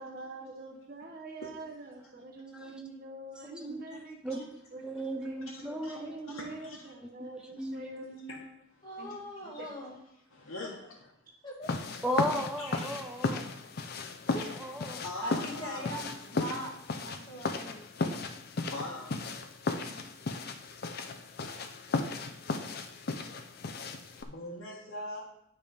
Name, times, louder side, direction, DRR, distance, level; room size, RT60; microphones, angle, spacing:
voice 1, 0.0-4.2 4.7-4.8 5.1-8.4 9.0-9.1 9.4-9.7, right 2 dB, 45° right, 1 dB, 0.8 m, -45 dB
voice 2, 4.7-6.2 7.2-7.3 7.6-8.0 12.0-13.4 14.3-15.0, equal, 5° right, 4 dB, 0.5 m, -35 dB
voice 3, 5.5-6.8 8.3-8.4 9.0-9.1 10.3-11.1 12.6-13.0 14.0-14.3 15.0-16.2 18.2-19.6 24.2-25.3, left 2 dB, 70° left, -6 dB, 1.2 m, -43 dB
voice 4, 8.8-10.0 11.4-11.7 14.3-14.7 15.2-17.8 19.8-20.1, equal, 20° left, -5 dB, 2.0 m, -41 dB
sound 1, 11.6-24.2, left 3 dB, 45° left, 0.5 m, -35 dB
10.0 x 3.5 x 5.0 m, 0.79 s
head